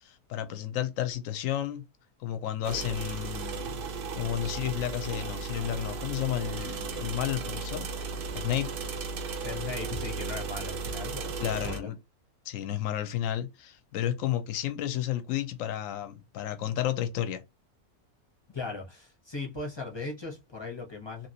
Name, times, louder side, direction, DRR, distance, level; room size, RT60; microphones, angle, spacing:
voice 1, 0.0-1.8 2.2-3.8 4.2-7.9 8.3-8.7 11.4-12.0 12.5-17.4, left 11 dB, 70° left, 0.9 m, -32 dB
sound 1, 2.6-11.8, right 4 dB, 75° right, 0.5 m, -35 dB
voice 2, 9.4-11.9 18.5-21.3, left 3 dB, 25° left, 0.6 m, -38 dB
2.9 x 2.8 x 2.7 m
omnidirectional pair, 1.6 m